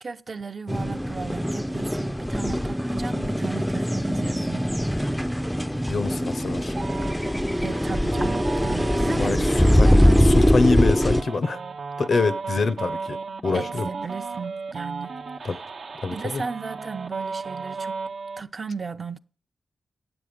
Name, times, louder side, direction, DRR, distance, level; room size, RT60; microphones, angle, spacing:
voice 1, 0.0-4.7 7.6-10.2 13.5-15.6 16.1-18.0 18.4-19.2, right 5 dB, 45° right, 0.5 m, -36 dB
sound 1, 0.7-11.2, equal, ahead, 0.4 m, -22 dB
voice 2, 5.6-6.7 9.1-9.4 9.8-9.9 10.2-11.6 12.0-13.9 15.4-15.6 16.0-16.4, left 4 dB, 65° left, 0.7 m, -25 dB
sound 2, 6.8-18.4, right 4 dB, 80° right, 0.9 m, -35 dB
9.6 x 7.7 x 5.1 m
wide cardioid pair, 95°, 0 cm